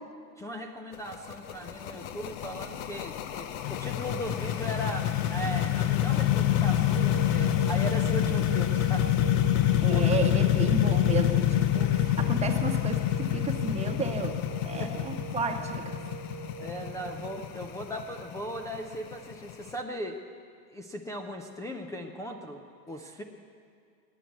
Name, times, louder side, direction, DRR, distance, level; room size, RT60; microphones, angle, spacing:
voice 1, 0.4-9.1 9.6-10.0 14.8-15.0 16.6-20.2 20.7-23.2, equal, 5° left, 4 dB, 0.5 m, -38 dB
sound 1, 0.9-19.7, left 13 dB, 50° left, 1.0 m, -27 dB
sound 2, 6.9-17.4, right 6 dB, 35° right, 1.3 m, -40 dB
voice 2, 9.8-15.9, right 4 dB, 15° right, 3 dB, 1.4 m, -33 dB
17.5 x 9.7 x 8.2 m, 2.3 s
hypercardioid pair, 120°, 50 cm